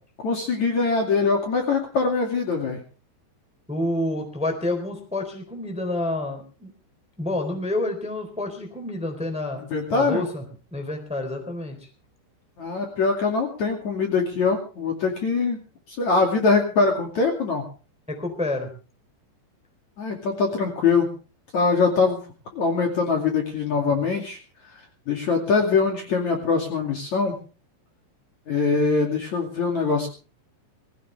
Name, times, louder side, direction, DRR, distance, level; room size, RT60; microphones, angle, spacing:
voice 1, 0.2-2.8 9.6-10.2 12.6-15.6 15.9-17.6 20.0-21.1 21.5-22.3 22.5-24.4 25.1-27.4 28.5-30.1, left 4 dB, 45° left, 1 dB, 3.3 m, -23 dB
voice 2, 3.7-6.7 7.2-9.6 9.9-10.4 10.7-11.8 18.1-18.7, left 1 dB, ahead, 5 dB, 3.0 m, -28 dB
21.0 x 16.5 x 3.4 m, 0.37 s
omnidirectional pair, 5.2 m